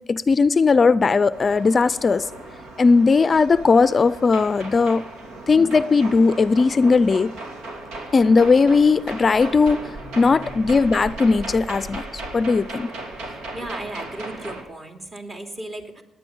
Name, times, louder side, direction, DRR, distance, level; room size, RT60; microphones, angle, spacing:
voice 1, 0.1-2.3 2.8-5.0 5.5-7.3 8.1-9.9 10.2-12.9, left 4 dB, 35° left, 15 dB, 0.5 m, -18 dB
sound 1, 1.3-14.6, right 2 dB, 90° right, 2.8 m, -36 dB
voice 2, 13.3-16.0, right 1 dB, 35° right, 3 dB, 2.8 m, -36 dB
18.5 x 9.9 x 7.1 m, 0.93 s
cardioid pair, 90°, 0 cm